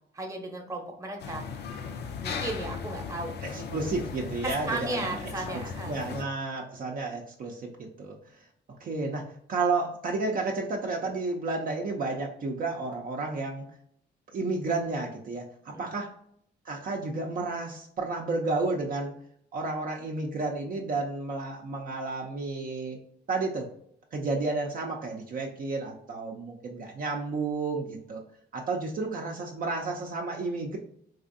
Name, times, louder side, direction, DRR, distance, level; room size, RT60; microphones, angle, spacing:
voice 1, 0.1-1.4 2.2-3.8 4.4-5.9 15.7-15.9, right 2 dB, 15° right, 1 dB, 0.8 m, -35 dB
sound 1, 1.2-6.2, left 6 dB, 60° left, 0.5 m, -37 dB
voice 2, 3.5-5.2 5.9-8.2 8.8-13.7 14.3-16.1 16.6-19.1 19.5-23.0 23.3-23.7 24.1-28.2 28.5-30.8, right 3 dB, 45° right, 0 dB, 0.5 m, -31 dB
4.0 x 2.5 x 2.6 m, 0.68 s
cardioid pair, 115°, 19 cm